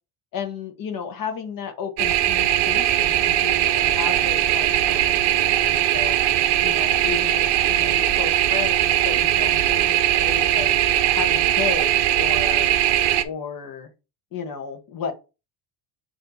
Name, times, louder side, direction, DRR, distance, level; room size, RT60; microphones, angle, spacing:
voice 1, 0.3-6.2 6.6-10.7 11.1-12.7 13.2-13.9 14.3-15.1, left 7 dB, 40° left, 1.5 m, -33 dB
sound 1, 2.0-13.2, right 12 dB, 55° right, 0.9 m, -20 dB
7.0 x 3.3 x 4.2 m
cardioid pair, 140°, 50 cm